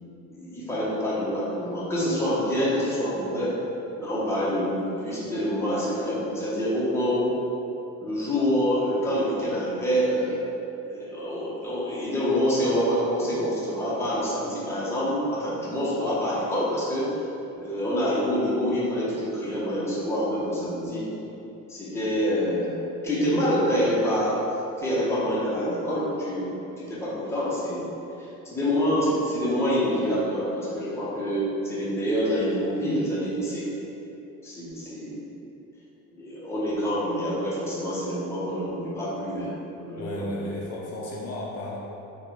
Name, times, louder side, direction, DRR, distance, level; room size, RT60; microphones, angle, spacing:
voice 1, 0.3-3.6 4.0-7.3 8.0-10.4 10.8-17.1 17.6-21.1 21.7-24.4 24.8-27.9 28.2-33.7 34.4-35.2 36.2-40.3, equal, 10° left, -8 dB, 0.6 m, -26 dB
voice 2, 40.0-41.8, left 1 dB, 50° left, -4 dB, 0.5 m, -33 dB
3.7 x 2.2 x 3.1 m, 2.9 s
cardioid pair, 130°, 33 cm